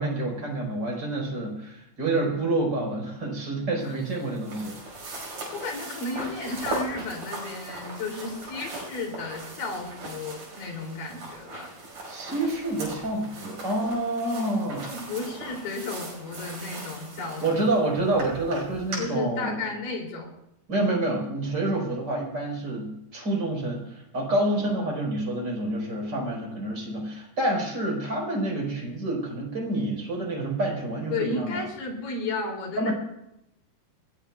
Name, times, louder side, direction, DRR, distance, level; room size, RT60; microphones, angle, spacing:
voice 1, 0.0-4.7 12.1-14.9 17.4-19.5 20.7-31.6 32.8-32.9, right 1 dB, 25° right, -1 dB, 4.7 m, -28 dB
sound 1, 3.8-19.0, right 2 dB, 55° right, 7.0 m, -39 dB
voice 2, 5.5-11.7 14.8-17.8 19.0-20.3 24.6-24.9 31.1-32.9, left 3 dB, 60° left, 0 dB, 4.5 m, -33 dB
22.0 x 19.5 x 2.4 m, 0.83 s
omnidirectional pair, 4.5 m